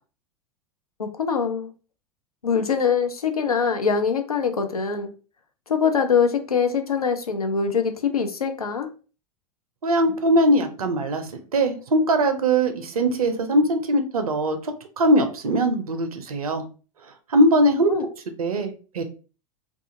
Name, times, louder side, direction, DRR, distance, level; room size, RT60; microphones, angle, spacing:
voice 1, 1.0-1.7 2.4-5.1 5.7-8.9 17.9-18.0, left 6 dB, 85° left, 0.4 m, -23 dB
voice 2, 9.8-16.6 17.3-17.9 18.4-19.0, right 1 dB, 80° right, 0.5 m, -21 dB
2.5 x 2.3 x 2.5 m
figure-of-eight pair, 85°, 18 cm